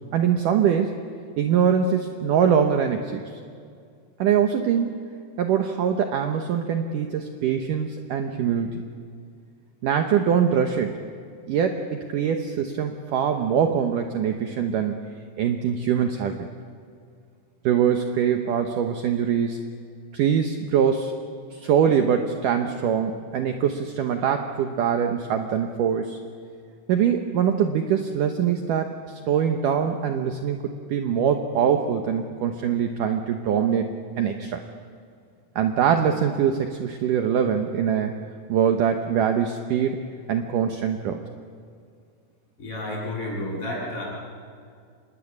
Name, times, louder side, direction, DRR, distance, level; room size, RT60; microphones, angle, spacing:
voice 1, 0.1-0.9 1.4-3.3 4.2-4.9 5.4-8.8 9.8-11.0 11.5-16.5 17.6-19.6 20.1-21.1 21.5-26.2 26.9-33.9 34.2-34.6 35.6-38.2 38.5-40.0 40.3-41.2, right 8 dB, 70° right, 5 dB, 2.2 m, -23 dB
voice 2, 42.6-44.0, left 1 dB, 30° left, -4 dB, 8.6 m, -31 dB
26.5 x 21.0 x 8.6 m, 2.2 s
omnidirectional pair, 4.8 m